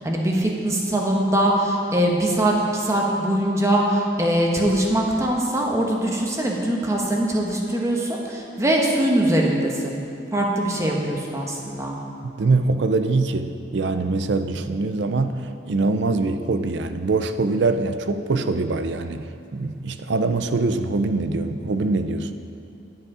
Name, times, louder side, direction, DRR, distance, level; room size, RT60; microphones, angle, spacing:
voice 1, 0.0-10.0 10.3-12.0, right 1 dB, 15° right, -1 dB, 1.1 m, -22 dB
voice 2, 12.2-22.3, right 3 dB, 70° right, 9 dB, 0.5 m, -23 dB
10.5 x 7.4 x 4.9 m, 2.8 s
head